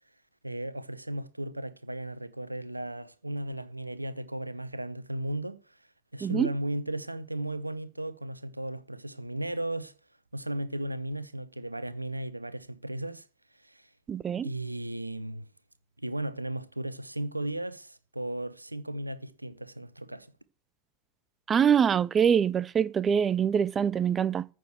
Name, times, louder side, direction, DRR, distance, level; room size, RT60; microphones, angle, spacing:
voice 1, 0.4-5.8 6.1-9.9 10.3-13.3 13.5-13.9 14.4-15.5 16.0-20.3, right 1 dB, 85° right, 0.9 m, -35 dB
voice 2, 14.1-14.5 21.5-24.5, right 7 dB, 20° right, 0.6 m, -24 dB
14.5 x 6.5 x 7.6 m
figure-of-eight pair, 90°, 0 cm